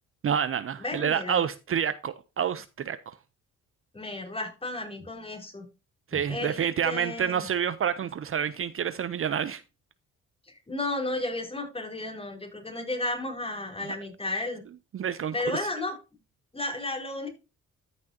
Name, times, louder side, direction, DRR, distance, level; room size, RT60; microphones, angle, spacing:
voice 1, 0.2-3.1 6.1-9.6 14.9-15.3, right 8 dB, 45° right, 0.7 m, -28 dB
voice 2, 0.8-1.4 3.9-5.6 6.3-7.5 10.5-14.6 15.3-16.0 16.5-17.3, left 2 dB, 20° left, 4.6 m, -33 dB
13.5 x 6.2 x 2.8 m
cardioid pair, 90°, 30 cm